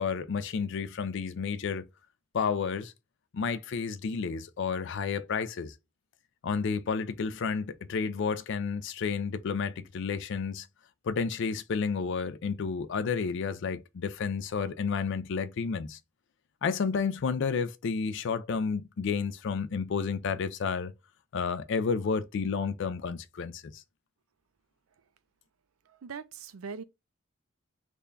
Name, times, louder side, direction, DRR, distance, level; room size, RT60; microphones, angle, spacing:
voice 1, 0.0-1.9 2.3-2.9 3.3-5.7 6.4-10.7 11.0-16.0 16.6-20.9 21.3-23.8, left 5 dB, 60° left, 0.4 m, -31 dB
voice 2, 25.9-26.8, right 5 dB, 85° right, 0.5 m, -41 dB
3.4 x 2.2 x 3.7 m
head